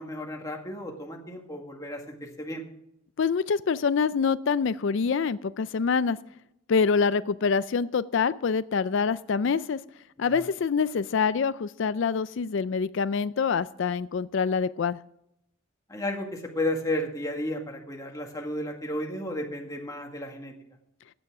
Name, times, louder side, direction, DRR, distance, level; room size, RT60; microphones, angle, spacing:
voice 1, 0.0-2.6 10.2-10.5 15.9-20.5, left 1 dB, 15° left, 1 dB, 1.9 m, -33 dB
voice 2, 3.2-6.2 6.7-9.8 10.2-15.0, left 5 dB, 60° left, 16 dB, 0.4 m, -25 dB
15.5 x 9.1 x 4.8 m, 0.78 s
head